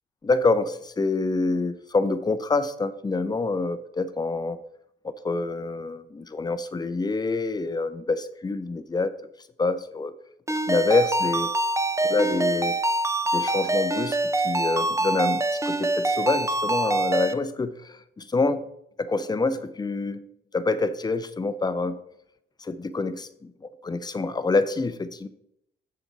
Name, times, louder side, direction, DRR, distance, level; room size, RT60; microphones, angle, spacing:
voice 1, 0.2-4.6 5.0-9.1 9.6-10.1 10.7-11.5 12.0-12.8 13.3-14.2 14.4-18.6 19.0-20.2 20.5-22.0 22.6-25.3, left 3 dB, 20° left, 12 dB, 0.7 m, -26 dB
Ringtone, 10.5-17.3, right 2 dB, 15° right, 0.7 m, -25 dB
7.0 x 6.9 x 4.8 m, 0.77 s
cardioid pair, 90°, 20 cm